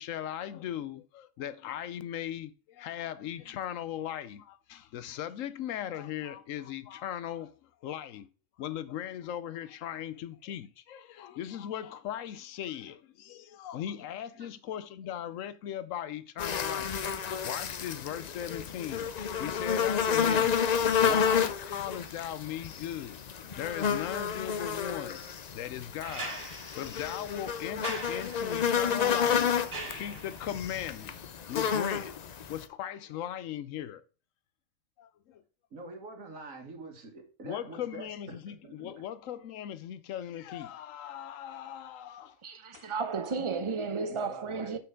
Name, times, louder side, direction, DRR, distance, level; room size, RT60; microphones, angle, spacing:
voice 1, 0.0-8.3 8.6-20.6 20.9-25.2 25.5-26.4 26.8-29.6 29.9-31.2 31.5-32.1 32.5-34.0 35.0-35.4 37.4-42.4 42.7-42.9, left 10 dB, 80° left, 1.0 m, -38 dB
sound 1, 16.4-32.6, left 7 dB, 65° left, 0.4 m, -30 dB
sound 2, 26.0-30.6 32.2-32.3, right 3 dB, 60° right, 2.6 m, -42 dB
voice 2, 35.7-38.9 44.1-44.8, right 2 dB, 80° right, 1.9 m, -45 dB
voice 3, 42.4-44.8, right 4 dB, 30° right, 0.6 m, -33 dB
6.1 x 5.9 x 3.6 m
omnidirectional pair, 1.4 m